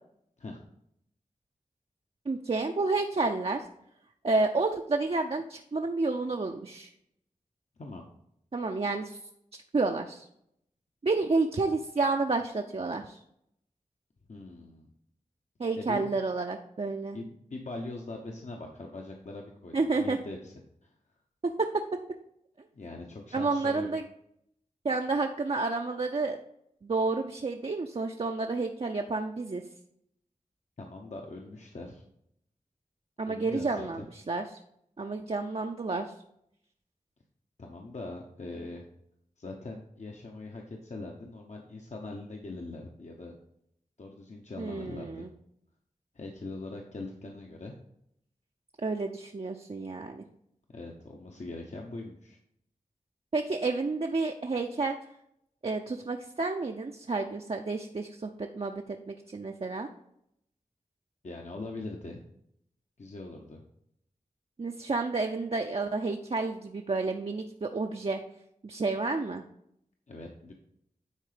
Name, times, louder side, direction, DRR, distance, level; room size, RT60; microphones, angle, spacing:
voice 1, 2.3-3.7 4.2-6.9 8.5-9.2 9.7-10.3 11.0-13.2 15.6-17.2 19.7-20.2 21.4-22.0 23.3-24.0 24.8-26.4 26.8-29.6 33.2-34.4 35.0-36.1 44.6-45.3 48.8-50.2 53.3-55.0 55.6-59.9 64.6-68.2 68.6-69.4, right 3 dB, 45° right, 3 dB, 0.6 m, -30 dB
voice 2, 14.3-14.9 15.8-16.1 17.1-20.5 20.8-20.9 22.7-23.9 30.8-32.0 33.2-34.0 37.6-38.9 39.4-43.4 44.0-45.3 46.1-47.7 50.7-52.4 61.2-62.2 63.0-63.6 70.1-70.5, left 2 dB, 60° left, 1 dB, 1.0 m, -41 dB
9.8 x 3.8 x 5.0 m, 0.75 s
wide cardioid pair, 50°, 14 cm